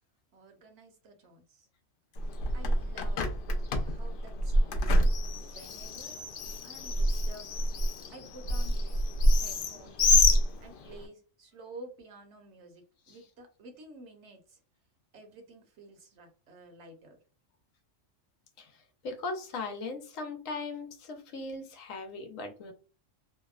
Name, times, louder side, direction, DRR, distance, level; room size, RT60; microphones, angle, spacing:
voice 1, 0.3-1.7 2.5-3.2 3.8-5.0 5.4-6.2 6.6-7.5 8.1-9.0 9.3-10.1 10.6-14.6 15.1-17.2, right 2 dB, 65° right, 4 dB, 1.0 m, -51 dB
Bird, 2.2-11.0, left 1 dB, 65° left, 0.5 m, -27 dB
voice 2, 19.0-22.7, left 3 dB, 90° left, 6 dB, 1.1 m, -38 dB
2.8 x 2.0 x 2.3 m, 0.37 s
omnidirectional pair, 1.3 m